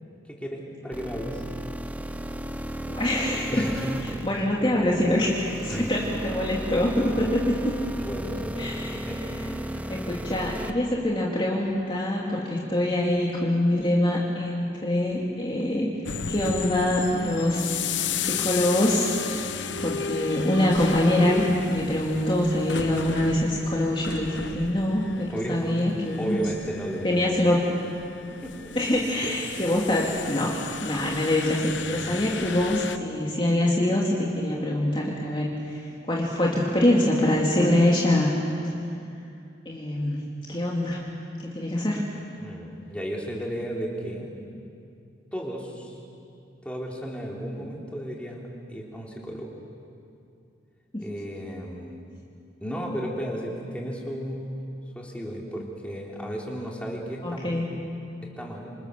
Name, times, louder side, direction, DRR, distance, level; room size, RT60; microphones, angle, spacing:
voice 1, 0.2-1.4 3.5-3.9 4.3-4.7 5.7-5.9 8.0-9.2 9.7-10.1 25.3-25.8 26.2-27.1 28.3-28.7 29.2-29.3 42.4-44.3 45.3-46.0 46.6-49.5 51.0-52.0 52.6-54.6 54.9-57.6 58.2-58.7, equal, 5° left, -2 dB, 3.5 m, -34 dB
sound 1, 0.9-10.7, equal, 10° right, 0.8 m, -34 dB
voice 2, 2.9-3.7 4.0-7.7 8.6-9.1 9.5-15.9 16.3-17.6 18.1-26.4 27.0-27.7 28.7-30.5 30.8-38.3 39.7-41.1 41.4-42.1 50.9-51.0 57.2-57.7, left 1 dB, 25° left, -3 dB, 2.5 m, -25 dB
sound 2, 16.1-33.0, left 6 dB, 80° left, 1.0 m, -34 dB
27.0 x 27.0 x 6.9 m, 2.5 s
head